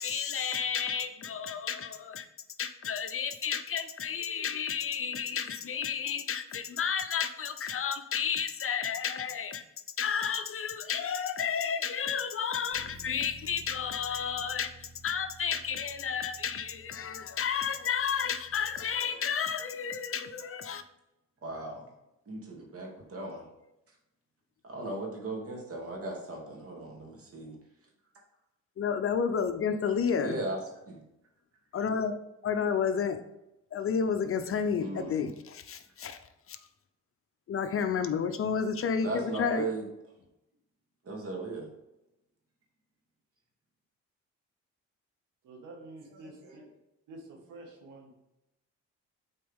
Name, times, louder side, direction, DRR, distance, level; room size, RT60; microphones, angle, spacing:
voice 1, 0.0-2.3 2.6-9.6 10.0-20.8 28.8-30.4 31.7-33.2 33.7-36.2 36.5-36.6 37.5-39.7, left 7 dB, 45° left, 0.7 m, -31 dB
Bass guitar, 12.7-19.0, right 1 dB, 10° left, 2.4 m, -53 dB
voice 2, 21.4-21.9 22.3-23.5 23.9-24.0 24.6-27.6 30.2-31.0 34.8-35.3 39.0-39.9 41.0-41.7, right 2 dB, 50° right, 2.6 m, -37 dB
voice 3, 45.4-46.7 47.1-48.1, right 2 dB, 85° right, 1.9 m, -48 dB
8.3 x 4.4 x 3.7 m
cardioid pair, 90°, 30 cm